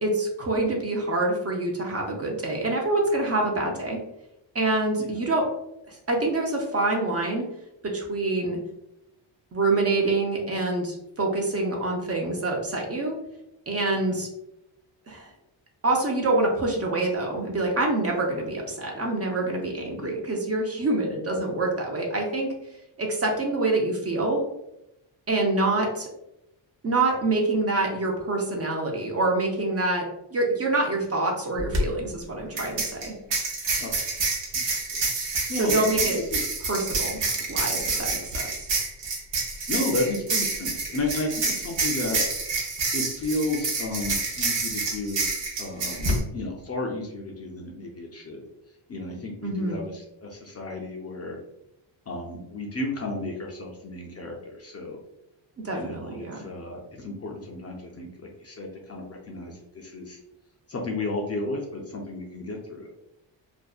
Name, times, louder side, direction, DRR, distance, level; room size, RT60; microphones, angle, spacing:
voice 1, 0.0-4.0 4.5-5.4 5.9-7.5 7.9-8.6 9.5-13.2 13.7-14.3 15.1-15.3 15.8-22.5 23.0-24.4 25.3-26.1 26.8-30.0 30.3-33.1 35.5-36.2 36.7-37.2 37.5-38.7 49.4-49.8 55.6-56.5, right 2 dB, 35° right, 0 dB, 0.4 m, -26 dB
sound 1, 31.6-31.8 32.6-46.2, right 3 dB, 65° right, 0.7 m, -28 dB
voice 2, 35.5-36.2 39.7-42.2 42.9-45.3 45.6-48.4 48.9-51.4 52.1-55.0 55.7-60.2 60.7-62.9, left 2 dB, 35° left, 0 dB, 0.4 m, -33 dB
2.6 x 2.1 x 2.3 m, 0.85 s
cardioid pair, 100°, 48 cm